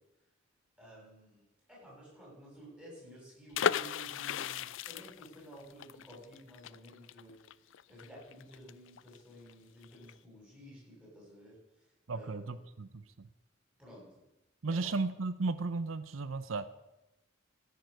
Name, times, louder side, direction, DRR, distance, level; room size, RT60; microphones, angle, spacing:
voice 1, 0.8-1.4 1.7-7.4 7.9-12.4 12.9-13.0 13.8-14.2 14.7-14.9, equal, 5° right, -5 dB, 6.8 m, -53 dB
sound 1, 3.5-9.2 9.5-9.6 9.8-10.1, left 8 dB, 70° left, 0.4 m, -36 dB
voice 2, 12.1-13.3 14.6-16.7, right 3 dB, 90° right, 14 dB, 0.7 m, -35 dB
15.5 x 9.4 x 6.4 m, 0.94 s
head